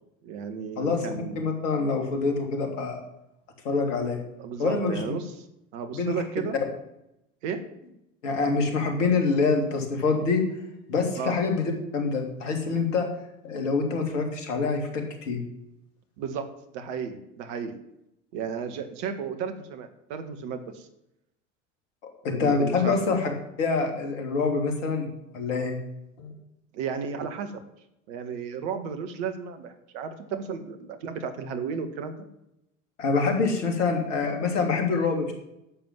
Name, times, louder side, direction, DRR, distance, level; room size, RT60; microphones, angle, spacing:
voice 1, 0.2-1.4 4.4-5.5 5.7-6.6 7.4-7.6 11.1-11.4 16.2-17.8 18.3-20.9 22.3-22.9 26.7-27.5 28.1-32.1, right 6 dB, 65° right, 8 dB, 1.9 m, -33 dB
voice 2, 1.3-3.0 3.6-4.2 4.6-5.0 5.9-6.1 8.2-10.4 10.9-13.1 13.4-15.4 22.2-23.3 23.6-25.1 25.3-25.8 26.2-26.3 33.0-35.3, left 4 dB, 75° left, 4 dB, 3.0 m, -25 dB
11.0 x 7.7 x 7.7 m, 0.83 s
hypercardioid pair, 65°, 37 cm